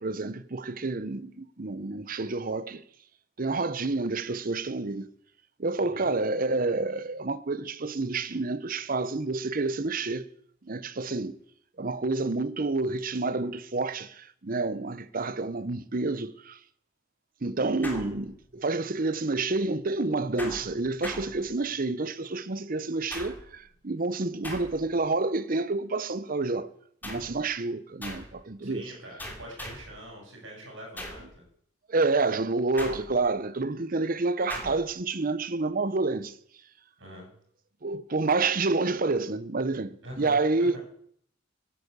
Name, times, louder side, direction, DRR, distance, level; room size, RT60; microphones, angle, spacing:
voice 1, 0.0-2.8 3.4-5.1 5.6-10.3 10.6-11.4 11.8-16.6 17.4-26.7 27.0-28.9 31.9-36.3 37.8-40.8, right 3 dB, 45° right, 0.8 m, -29 dB
voice 2, 5.8-6.1 28.6-31.4 37.0-37.3 40.0-40.8, right 1 dB, 80° right, 7.7 m, -44 dB
sound 1, 17.8-18.7 20.4-21.9 23.1-23.7 24.4-25.1 27.0-27.4 28.0-28.4 29.2-30.0 31.0-31.4 32.8-33.4 34.5-34.9, left 1 dB, 10° left, 2.8 m, -41 dB
13.5 x 10.0 x 8.2 m
head